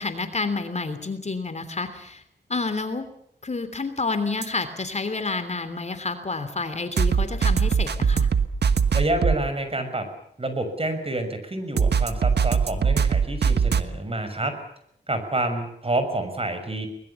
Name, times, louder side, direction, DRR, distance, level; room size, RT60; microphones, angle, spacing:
voice 1, 0.0-2.2 2.5-3.0 3.4-8.3, left 3 dB, 40° left, 10 dB, 3.2 m, -29 dB
sound 1, 4.4-4.5 7.0-9.4 11.8-13.8, right 6 dB, 75° right, 1.4 m, -21 dB
voice 2, 8.9-10.1 10.4-14.5 15.1-16.9, right 2 dB, 35° right, 8 dB, 6.5 m, -28 dB
23.5 x 21.0 x 7.1 m, 0.73 s
cardioid pair, 70°, 18 cm